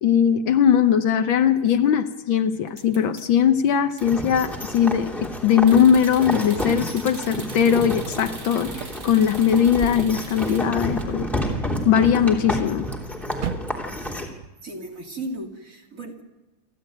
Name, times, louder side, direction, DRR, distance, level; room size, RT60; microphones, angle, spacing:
voice 1, 0.0-5.1 5.4-11.3 11.8-12.9, left 8 dB, 70° left, 9 dB, 1.6 m, -20 dB
sound 1, 2.7-3.5 3.9-4.0 4.5-4.9 5.7-10.6, right 4 dB, 65° right, 3.5 m, -42 dB
sound 2, 4.0-14.3, left 1 dB, ahead, 2.9 m, -30 dB
sound 3, 8.6-14.5, right 8 dB, 90° right, 2.1 m, -40 dB
voice 2, 14.6-16.2, right 1 dB, 35° right, 1 dB, 3.2 m, -35 dB
29.0 x 12.0 x 9.2 m, 1.2 s
omnidirectional pair, 2.4 m